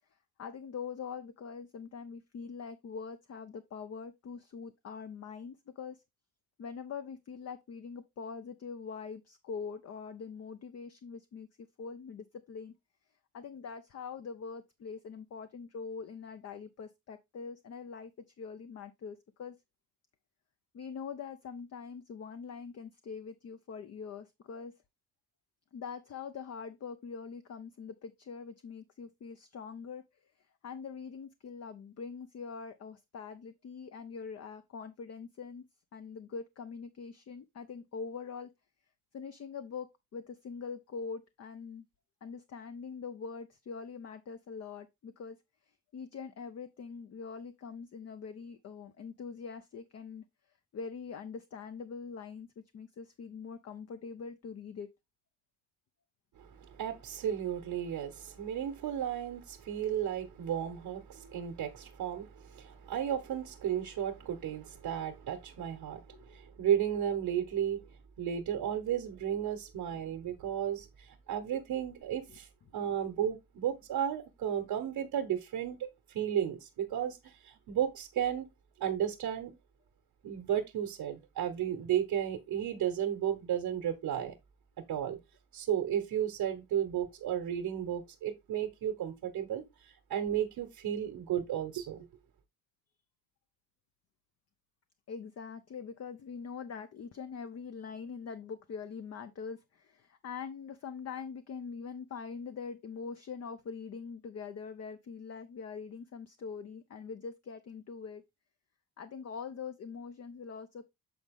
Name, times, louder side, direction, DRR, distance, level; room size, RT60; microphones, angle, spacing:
voice 1, 0.4-6.0 6.6-11.5 11.8-12.7 13.3-18.1 18.4-19.5 20.7-24.7 25.7-30.0 30.6-35.6 35.9-38.5 39.1-41.8 42.2-45.4 45.9-50.2 50.7-54.9 66.1-66.4 69.9-70.0 72.3-72.4 95.1-108.2 109.0-110.9, left 5 dB, 45° left, 0.7 m, -43 dB
voice 2, 56.3-67.8 68.2-78.5 78.8-79.5 80.2-84.3 84.9-85.2 85.5-92.1, right 9 dB, 80° right, 1.2 m, -34 dB
7.8 x 4.1 x 3.6 m
cardioid pair, 80°, 35 cm